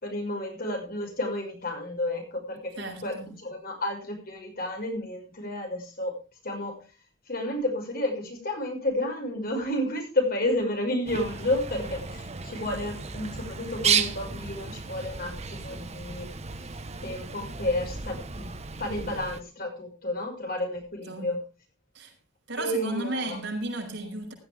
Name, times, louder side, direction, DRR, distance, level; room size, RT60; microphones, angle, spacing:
voice 1, 0.0-6.2 6.4-6.8 7.3-16.3 17.0-18.5 18.8-21.4 22.6-23.4, left 1 dB, 50° left, 6.0 m, -31 dB
voice 2, 2.7-3.3 21.1-21.3 21.9-22.1 22.5-24.3, right 2 dB, 65° right, 5.8 m, -34 dB
Bird, 11.1-19.4, right 6 dB, 35° right, 1.0 m, -33 dB
16.0 x 13.5 x 3.5 m
head